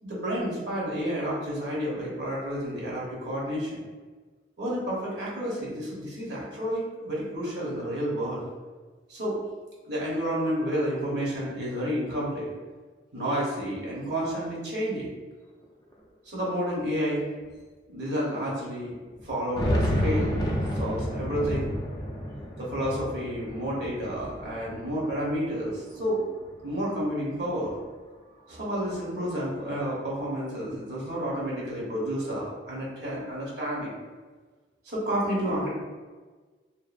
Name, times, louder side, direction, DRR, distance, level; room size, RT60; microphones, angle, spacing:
voice 1, 0.0-3.8 4.6-8.4 9.1-9.4 9.9-12.5 13.1-15.1 16.2-17.2 17.9-18.9 19.2-20.4 20.7-21.7 22.6-26.3 26.6-27.8 28.5-34.0 34.9-35.7, equal, 70° right, -5 dB, 1.0 m, -30 dB
sound 1, 15.6-15.7 15.9-16.0 16.9-17.0 17.5-17.6 19.2-25.6 26.0-27.0, equal, 20° left, 0.3 m, -30 dB
2.8 x 2.3 x 2.5 m, 1.4 s
head